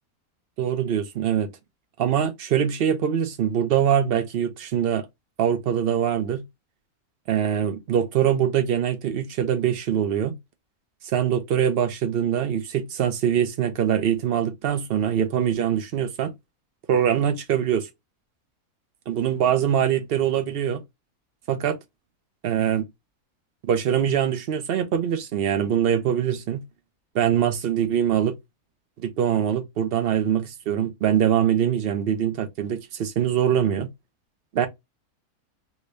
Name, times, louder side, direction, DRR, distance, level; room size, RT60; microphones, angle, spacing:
voice 1, 0.6-1.5 2.0-5.1 5.4-6.4 7.3-10.3 11.1-16.3 16.9-17.9 19.1-20.8 21.5-21.8 22.4-22.9 23.6-26.6 27.1-28.4 29.0-33.9 34.5-34.7, right 9 dB, 60° right, 0.6 m, -23 dB
3.1 x 2.6 x 3.1 m
omnidirectional pair, 1.6 m